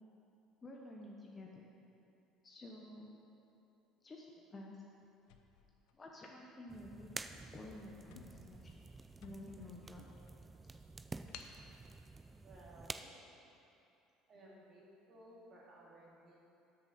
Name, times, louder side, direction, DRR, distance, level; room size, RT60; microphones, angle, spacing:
voice 1, 0.6-1.7 2.4-3.3 4.0-4.3 4.5-4.8 6.0-7.1 7.5-8.7 9.2-10.2 11.3-11.5, left 2 dB, 20° left, -2 dB, 0.9 m, -51 dB
sound 1, 5.2-6.5 7.2-7.4 7.7-7.8 8.0-9.8 10.3-10.4 11.3-11.6, left 8 dB, 80° left, 0.7 m, -56 dB
sound 2, 6.7-12.9, right 3 dB, 15° right, 0.4 m, -50 dB
voice 2, 12.4-13.1 14.3-16.4, right 1 dB, 40° right, -5 dB, 2.4 m, -58 dB
12.5 x 6.8 x 4.3 m, 2.8 s
cardioid pair, 140°, 0 cm